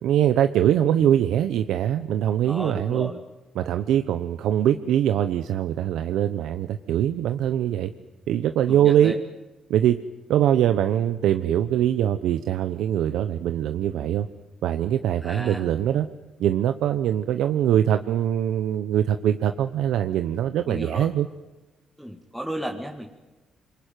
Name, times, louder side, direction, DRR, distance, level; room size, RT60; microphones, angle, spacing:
voice 1, 0.0-3.1 3.5-7.9 8.3-9.2 9.7-10.0 10.3-14.3 14.6-16.1 16.4-21.3, right 10 dB, 80° right, 9 dB, 0.9 m, -22 dB
voice 2, 2.5-3.2 9.0-9.2 15.2-15.6 20.7-21.1 22.0-23.1, equal, ahead, 2 dB, 2.3 m, -33 dB
26.5 x 23.5 x 9.4 m, 1.1 s
cardioid pair, 90°, 0 cm